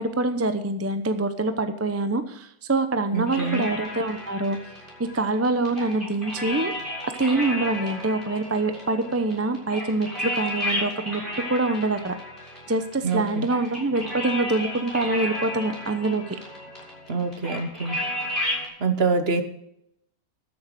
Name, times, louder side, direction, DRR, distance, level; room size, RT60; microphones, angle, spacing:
voice 1, 0.0-4.6 5.1-6.7 7.0-11.2 11.5-12.1 12.7-16.2, right 2 dB, 15° right, 9 dB, 0.5 m, -25 dB
voice 2, 3.1-3.7 13.0-13.5 17.1-18.0 18.8-19.4, right 4 dB, 45° right, 8 dB, 1.3 m, -25 dB
sound 1, 3.3-18.7, left 1 dB, 25° left, 6.7 m, -33 dB
13.0 x 7.2 x 7.7 m, 0.76 s
omnidirectional pair, 1.5 m